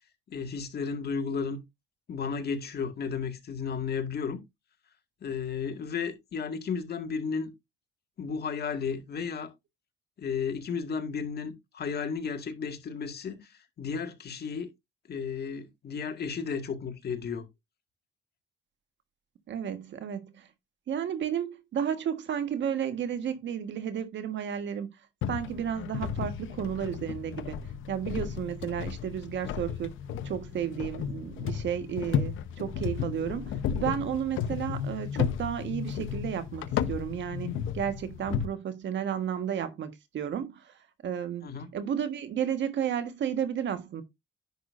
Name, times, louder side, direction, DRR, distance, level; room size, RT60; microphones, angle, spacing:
voice 1, 0.3-1.6 2.1-4.4 5.2-7.5 8.2-9.5 10.2-14.7 15.1-17.4 41.4-41.7, left 6 dB, 55° left, 1.9 m, -33 dB
voice 2, 19.5-20.5 20.9-24.9 25.3-27.6 27.9-29.9 30.2-40.7 41.0-41.5 41.7-44.0, right 9 dB, 65° right, 1.5 m, -32 dB
sound 1, 25.2-38.5, left 8 dB, 80° left, 0.8 m, -34 dB
10.5 x 6.2 x 2.6 m
cardioid pair, 90°, 20 cm